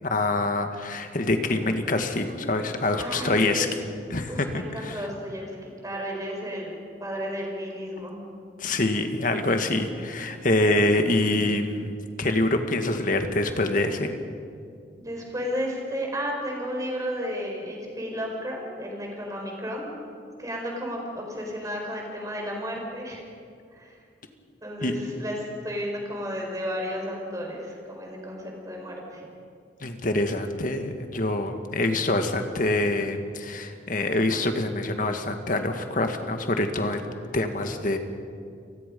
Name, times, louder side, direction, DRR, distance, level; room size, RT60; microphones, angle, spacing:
voice 1, 0.0-3.7 4.1-5.0 8.6-11.9 12.2-14.1 24.8-25.0 29.8-37.1 37.3-38.0, left 2 dB, 50° left, 6 dB, 1.8 m, -25 dB
voice 2, 3.0-3.8 4.3-8.2 15.0-19.9 20.4-23.2 23.7-23.9 24.6-29.3, equal, 20° right, 0 dB, 4.9 m, -33 dB
29.0 x 19.5 x 5.4 m, 2.4 s
head